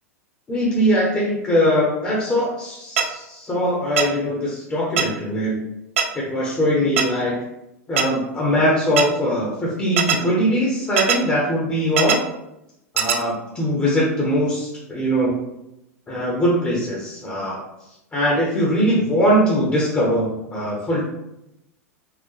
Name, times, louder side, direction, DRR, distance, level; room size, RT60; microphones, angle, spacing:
voice 1, 0.5-5.7 6.1-7.4 7.9-12.2 12.9-15.4 16.1-17.6 18.1-21.0, equal, 15° left, -5 dB, 0.8 m, -21 dB
sound 1, 3.0-3.1 4.0-4.1 5.0-5.1 6.0-6.1 7.0-7.1 8.0-8.1 9.0-9.1 10.0-10.2 11.0-11.2 12.0-12.2 13.0-13.2, right 7 dB, 60° right, 0.4 m, -18 dB
4.7 x 2.1 x 3.2 m, 0.88 s
figure-of-eight pair, 95°, 8 cm